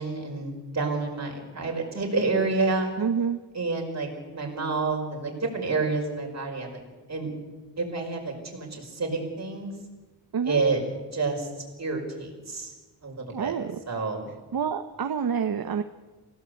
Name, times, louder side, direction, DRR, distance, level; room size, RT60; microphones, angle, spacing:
voice 1, 0.0-2.9 3.5-6.8 7.1-7.3 7.8-9.7 10.5-10.8 11.1-11.5 11.8-12.7 13.0-13.6 13.9-14.3, right 3 dB, 35° right, 1 dB, 5.2 m, -29 dB
voice 2, 3.0-3.4 10.3-10.6 13.3-13.8 14.5-15.8, right 7 dB, 55° right, 9 dB, 1.0 m, -28 dB
28.0 x 16.0 x 8.3 m, 1.2 s
wide cardioid pair, 180°, 44 cm